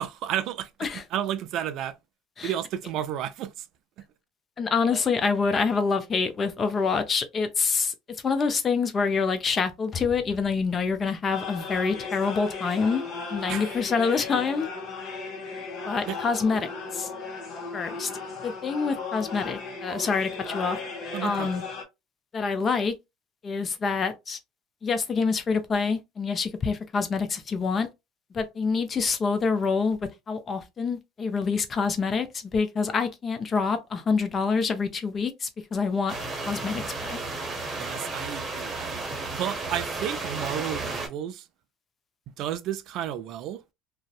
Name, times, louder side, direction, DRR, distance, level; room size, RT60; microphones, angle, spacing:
voice 1, 0.0-2.0 2.4-3.5 13.5-13.7 16.1-16.2 21.1-21.5 37.8-41.5 42.4-43.6, right 10 dB, 60° right, 0.3 m, -32 dB
voice 2, 4.6-7.9 8.2-13.0 13.3-14.7 15.8-17.1 17.7-18.1 18.4-20.8 21.2-21.6 22.3-22.9 23.4-24.4 24.8-27.9 28.3-30.0 30.3-36.1 36.5-37.2, left 5 dB, 35° left, 0.6 m, -26 dB
sound 1, 11.3-21.8, left 4 dB, 50° left, 1.0 m, -36 dB
sound 2, 36.1-41.1, right 3 dB, 30° right, 0.9 m, -33 dB
2.5 x 2.1 x 2.3 m
supercardioid pair, 95°, 0 cm